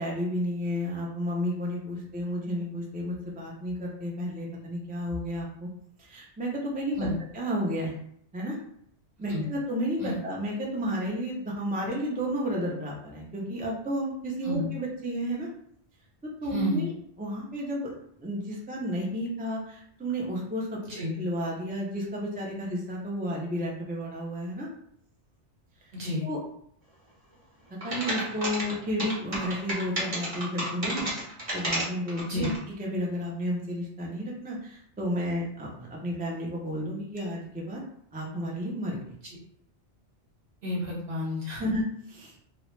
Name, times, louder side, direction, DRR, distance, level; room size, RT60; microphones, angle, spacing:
voice 1, 0.0-5.7 6.0-7.0 7.3-8.0 8.3-8.6 9.2-15.5 16.4-16.9 17.2-17.9 18.2-24.7 25.8-25.9 26.2-26.4 27.8-31.1 31.5-32.5 32.8-37.8 38.1-39.1 41.5-41.8 42.1-42.3, equal, 15° right, -3 dB, 0.3 m, -32 dB
voice 2, 16.5-16.9 20.8-21.1 25.9-26.3 32.2-32.5 40.6-41.7, left 1 dB, 55° right, -4 dB, 1.2 m, -31 dB
sound 1, 27.8-32.6, right 1 dB, 30° right, 0.9 m, -31 dB
3.0 x 2.3 x 3.1 m, 0.67 s
omnidirectional pair, 1.2 m